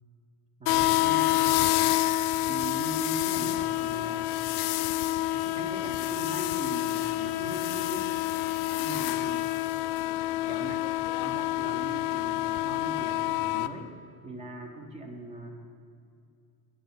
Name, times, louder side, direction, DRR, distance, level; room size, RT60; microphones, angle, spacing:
sound 1, 0.6-13.7, left 17 dB, 80° left, 0.5 m, -28 dB
voice 1, 0.6-1.6 2.5-4.4 5.4-8.1 8.8-9.5 10.5-10.8 11.2-13.9 14.2-15.6, right 2 dB, 20° right, 4 dB, 0.5 m, -40 dB
10.0 x 8.1 x 5.4 m, 2.4 s
cardioid pair, 170°, 37 cm